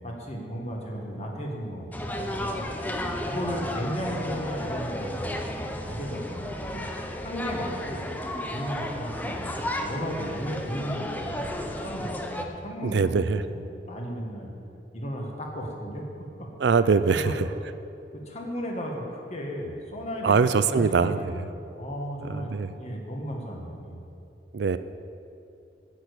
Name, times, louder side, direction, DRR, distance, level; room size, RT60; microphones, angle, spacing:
voice 1, 0.0-2.3 3.2-6.8 7.2-8.1 8.5-11.5 11.8-14.5 14.9-16.0 16.4-16.8 17.1-17.4 18.1-24.0, equal, 40° left, 0 dB, 1.8 m, -35 dB
sound 1, 1.9-12.4, left 1 dB, 10° left, 0.7 m, -33 dB
voice 2, 12.8-13.4 16.6-17.3 20.2-21.3 22.3-22.7 24.5-24.8, right 5 dB, 70° right, 13 dB, 0.4 m, -22 dB
10.0 x 6.8 x 8.3 m, 2.6 s
head